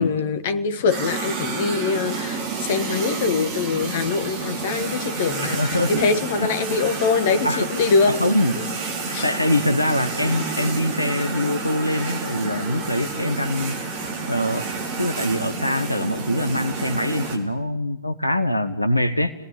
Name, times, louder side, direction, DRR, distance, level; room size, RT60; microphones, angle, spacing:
voice 1, 0.0-8.3 8.5-8.7 9.1-9.3, left 4 dB, 55° left, 11 dB, 1.5 m, -23 dB
sound 1, 0.9-17.4, right 4 dB, 45° right, 4.5 m, -29 dB
voice 2, 5.4-6.0 6.4-6.5 7.4-7.7 8.1-8.5 9.2-13.8 14.3-14.7 15.0-19.3, left 1 dB, 85° left, 10 dB, 1.0 m, -23 dB
29.5 x 18.5 x 8.8 m, 1.0 s
figure-of-eight pair, 90°, 0 cm